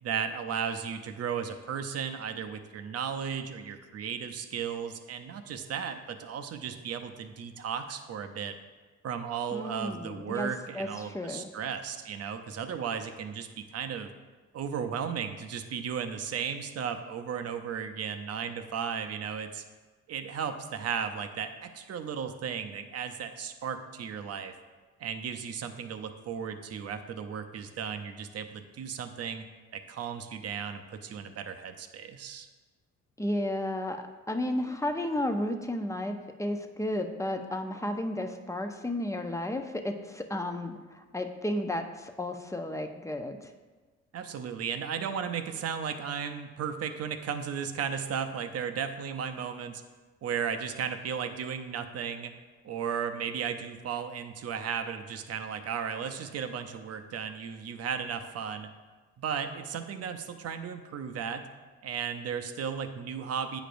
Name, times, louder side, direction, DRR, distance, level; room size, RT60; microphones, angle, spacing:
voice 1, 0.0-8.5 9.0-14.1 14.5-19.6 20.1-24.5 25.0-29.4 29.7-32.5 44.1-49.8 50.2-52.3 52.6-58.7 59.2-61.5 61.8-63.6, right 7 dB, 55° right, 7 dB, 0.6 m, -35 dB
voice 2, 9.5-10.5 10.7-11.5 33.2-43.5, left 1 dB, 10° left, 5 dB, 0.5 m, -33 dB
9.0 x 5.0 x 2.6 m, 1.3 s
cardioid pair, 90°, 30 cm